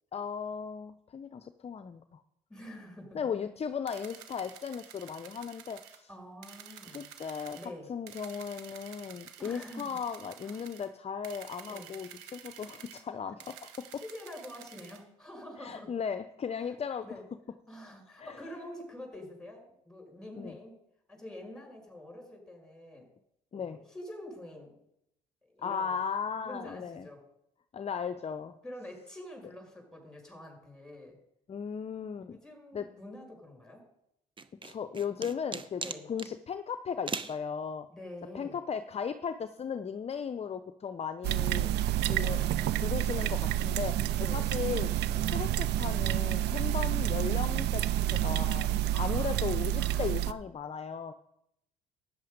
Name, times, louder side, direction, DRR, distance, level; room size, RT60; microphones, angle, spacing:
voice 1, 0.1-2.2 3.1-6.1 6.9-7.6 7.9-13.7 15.6-17.1 18.2-18.4 20.4-20.6 23.5-23.8 25.6-27.1 27.7-28.5 31.5-32.4 32.7-32.9 34.6-35.8 36.1-37.9 38.3-41.7 42.1-42.4 42.8-43.9 44.3-44.9 45.3-51.1, left 7 dB, 35° left, 11 dB, 0.6 m, -36 dB
voice 2, 2.5-3.2 6.1-7.1 7.5-7.9 9.4-10.0 10.4-10.6 11.7-11.9 13.9-15.9 17.0-17.2 17.7-20.7 21.1-23.1 23.5-24.7 25.5-26.0 26.4-27.2 28.6-31.2 32.2-33.8 35.8-36.1 37.9-38.6 42.1-42.5 44.1-44.5 45.1-45.3 48.9-49.4 49.8-50.1, left 1 dB, 5° left, 2 dB, 5.6 m, -46 dB
sound 1, 3.9-6.0 6.4-7.7 8.1-10.9 11.2-13.0 13.4-15.0, right 9 dB, 85° right, 1.3 m, -50 dB
sound 2, 34.4-36.3 37.1-37.4, right 4 dB, 25° right, 0.9 m, -38 dB
sound 3, 41.2-50.3, right 12 dB, 70° right, 0.6 m, -29 dB
13.0 x 9.4 x 5.2 m, 0.78 s
supercardioid pair, 65°, 18 cm